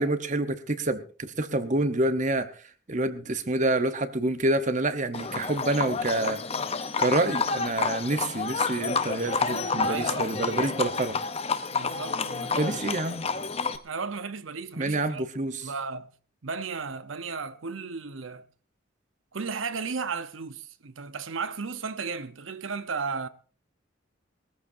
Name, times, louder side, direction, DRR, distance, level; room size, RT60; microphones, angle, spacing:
voice 1, 0.0-2.5 2.9-6.4 6.7-11.2 12.6-13.3 14.8-15.7, right 2 dB, 40° right, 0.9 m, -27 dB
Livestock farm animals working animals, 5.1-13.8, left 4 dB, 30° left, 0.7 m, -29 dB
voice 2, 9.3-10.6 11.7-12.9 13.8-15.2 15.6-16.1 16.4-18.5 19.3-23.3, right 5 dB, 85° right, 0.8 m, -35 dB
21.0 x 14.0 x 2.7 m
head